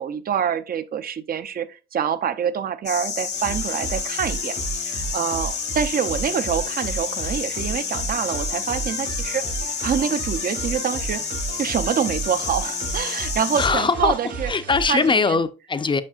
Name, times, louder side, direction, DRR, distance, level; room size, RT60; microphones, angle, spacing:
voice 1, 0.0-9.5 9.8-11.3 11.6-14.5 14.9-15.4, right 8 dB, 50° right, 0.6 m, -26 dB
sound 1, 2.9-13.7, left 6 dB, 55° left, 1.0 m, -29 dB
sound 2, 3.3-15.1, right 5 dB, 70° right, 2.3 m, -33 dB
voice 2, 13.5-14.2 14.5-16.0, left 4 dB, 25° left, 0.6 m, -21 dB
7.5 x 5.3 x 2.4 m
cardioid pair, 90°, 20 cm